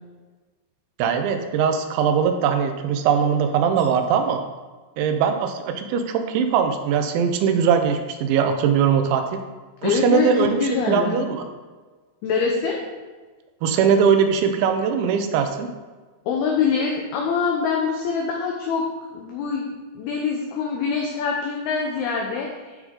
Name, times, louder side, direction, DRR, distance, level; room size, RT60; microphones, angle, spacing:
voice 1, 1.0-4.4 5.0-9.4 9.8-11.5 13.6-15.7, right 7 dB, 80° right, 6 dB, 3.0 m, -21 dB
voice 2, 9.8-11.2 12.2-12.8 16.3-18.8 19.1-19.7 20.0-22.7, left 5 dB, 75° left, 0 dB, 2.3 m, -24 dB
12.5 x 4.8 x 3.7 m, 1.3 s
omnidirectional pair, 5.3 m